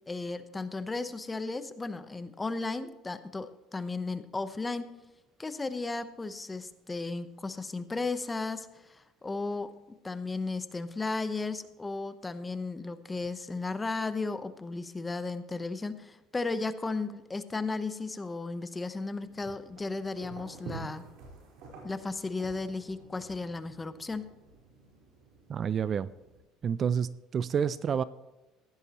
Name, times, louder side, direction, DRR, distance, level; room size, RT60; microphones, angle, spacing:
voice 1, 0.1-4.9 5.4-9.7 10.0-21.0 21.8-24.3, left 3 dB, 15° left, 11 dB, 0.9 m, -35 dB
sound 1, 19.2-26.4, right 4 dB, 70° right, 4.2 m, -49 dB
voice 2, 25.5-26.1 26.6-28.0, right 7 dB, 35° right, 17 dB, 0.4 m, -29 dB
16.0 x 11.0 x 3.0 m, 1.1 s
cardioid pair, 120°, 0 cm